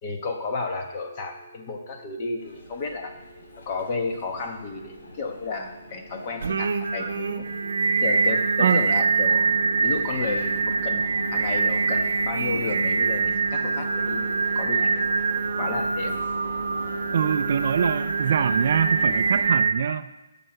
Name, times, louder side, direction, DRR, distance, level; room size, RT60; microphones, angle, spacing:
voice 1, 0.0-3.1 3.6-7.5 8.0-9.5 9.8-11.0 11.3-16.2, left 4 dB, 25° left, 4 dB, 1.2 m, -32 dB
sound 1, 0.8-6.6 7.4-9.8 13.8-15.8 16.3-17.1 18.0-18.5, left 2 dB, 45° left, 3.0 m, -50 dB
sound 2, 2.4-19.5, left 1 dB, 65° left, 2.7 m, -41 dB
Singing, 6.4-19.7, right 4 dB, 70° right, 0.8 m, -24 dB
voice 2, 17.1-20.1, right 7 dB, 45° right, 11 dB, 0.4 m, -24 dB
9.6 x 5.8 x 7.7 m, 1.0 s
hypercardioid pair, 170°, 0 cm